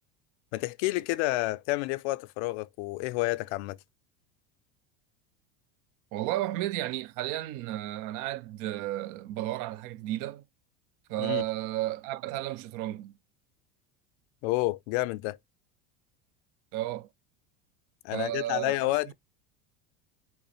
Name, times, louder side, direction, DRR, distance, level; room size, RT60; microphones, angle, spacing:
voice 1, 0.5-3.8 11.2-11.4 14.4-15.4 18.0-19.1, left 19 dB, 70° left, 0.5 m, -29 dB
voice 2, 6.1-10.4 11.1-13.1 16.7-17.1 18.1-18.8 19.1-19.2, right 15 dB, 60° right, 0.5 m, -33 dB
5.6 x 2.1 x 4.1 m
supercardioid pair, 120°, 35 cm